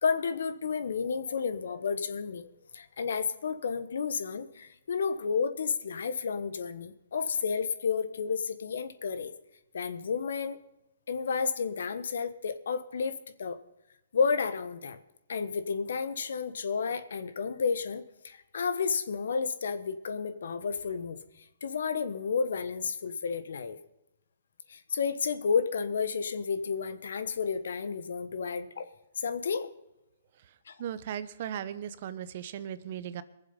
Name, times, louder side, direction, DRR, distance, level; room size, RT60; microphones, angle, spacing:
voice 1, 0.0-9.3 9.7-10.6 11.1-13.1 13.4-13.6 14.1-15.0 15.3-23.8 24.7-28.9 29.2-29.7 30.7-30.8, left 5 dB, 75° left, 12 dB, 1.2 m, -31 dB
voice 2, 30.8-33.2, right 9 dB, 50° right, 14 dB, 0.9 m, -37 dB
20.5 x 7.5 x 5.4 m, 0.87 s
hypercardioid pair, 140°, 0 cm